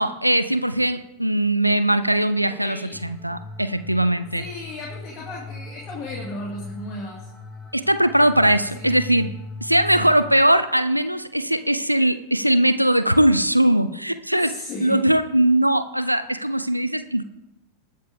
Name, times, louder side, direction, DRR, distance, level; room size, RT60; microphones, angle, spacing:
voice 1, 0.0-4.4 7.7-9.3 9.6-14.5 14.8-17.2, right 1 dB, 90° right, 12 dB, 0.5 m, -20 dB
voice 2, 2.5-3.0 4.3-7.3 8.7-9.0 9.9-10.1 14.3-15.1, left 2 dB, 30° left, -3 dB, 2.4 m, -35 dB
sound 1, 2.9-10.4, left 2 dB, 10° left, 1.6 m, -39 dB
19.5 x 6.6 x 3.6 m, 0.89 s
figure-of-eight pair, 90°, 0 cm